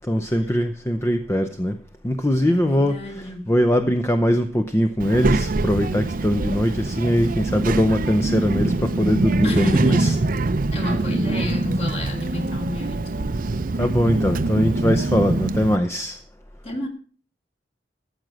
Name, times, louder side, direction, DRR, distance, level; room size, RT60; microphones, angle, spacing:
voice 1, 0.1-1.8 2.0-3.0 3.5-10.1 13.8-16.2, equal, 15° left, 0.6 m, -21 dB
voice 2, 2.4-3.5 9.4-10.2 10.7-13.5 16.6-16.9, left 1 dB, 35° left, 2.5 m, -30 dB
Child speech kid speaking, 5.0-15.8, right 2 dB, 50° right, 0.6 m, -24 dB
13.5 x 7.8 x 6.1 m
head